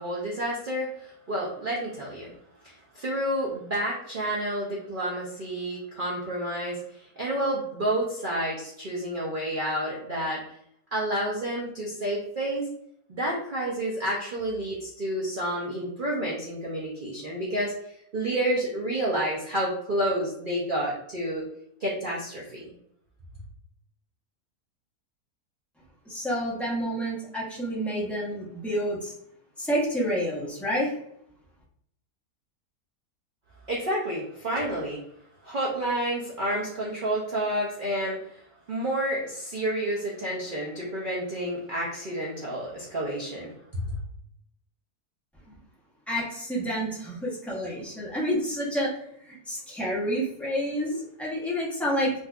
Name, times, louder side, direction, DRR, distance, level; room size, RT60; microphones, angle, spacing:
voice 1, 0.0-2.3 2.6-10.4 10.9-12.6 13.1-17.7 18.1-21.4 21.8-22.7 33.7-35.0 35.4-38.4 38.7-44.0, right 1 dB, 65° right, -4 dB, 0.5 m, -30 dB
voice 2, 26.1-29.1 29.6-30.9 45.5-45.6 46.1-48.9 49.3-52.1, equal, ahead, -6 dB, 0.5 m, -29 dB
3.9 x 2.5 x 2.3 m, 0.72 s
omnidirectional pair, 1.7 m